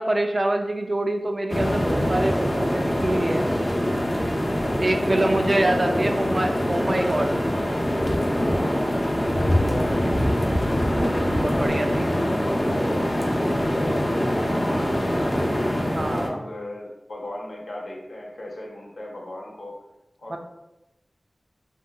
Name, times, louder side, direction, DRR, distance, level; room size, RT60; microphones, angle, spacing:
voice 1, 0.0-3.4 4.8-7.3 10.9-12.0 16.0-16.4 20.3-20.4, right 1 dB, 40° right, 4 dB, 0.3 m, -25 dB
sound 1, 1.5-16.3, equal, 25° left, 0.4 m, -24 dB
voice 2, 5.0-5.4 5.8-6.1 8.5-10.4 10.9-11.9 12.6-14.9 15.4-19.8 20.2-20.4, left 1 dB, 65° left, -2 dB, 0.7 m, -37 dB
Wind instrument woodwind instrument, 11.8-16.8, right 1 dB, 80° right, 0.7 m, -40 dB
3.6 x 2.1 x 2.3 m, 0.96 s
wide cardioid pair, 75°, 0 cm